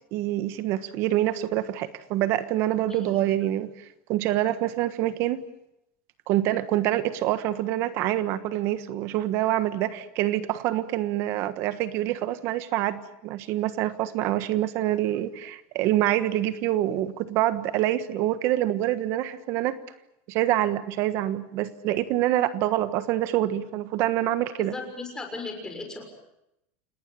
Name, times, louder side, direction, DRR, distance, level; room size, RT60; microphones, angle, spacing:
voice 1, 0.1-5.4 6.3-19.8 20.3-24.7, right 13 dB, 45° right, 12 dB, 1.4 m, -26 dB
voice 2, 24.6-26.0, left 3 dB, 10° left, 3 dB, 6.3 m, -36 dB
29.0 x 19.0 x 8.7 m, 0.83 s
supercardioid pair, 155°, 6 cm